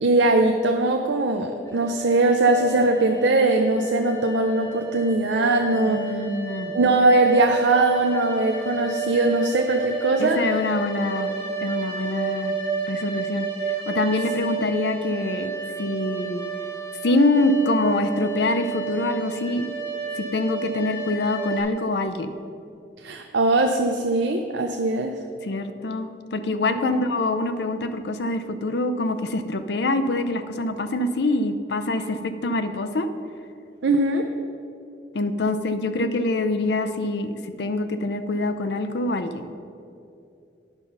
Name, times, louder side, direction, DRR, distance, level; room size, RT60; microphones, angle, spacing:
voice 1, 0.0-6.1 6.7-10.4 23.0-25.1 26.8-26.9 33.8-34.2, right 2 dB, 80° right, 4 dB, 0.5 m, -20 dB
sound 1, 1.7-21.6, right 5 dB, 10° left, 2.4 m, -32 dB
voice 2, 5.9-6.7 10.2-11.3 11.6-12.5 12.9-13.5 13.9-15.5 15.8-16.4 17.0-19.7 20.2-22.3 25.4-33.1 35.1-37.3 37.6-39.5, left 2 dB, 70° left, 9 dB, 0.5 m, -25 dB
9.7 x 5.8 x 5.4 m, 2.6 s
head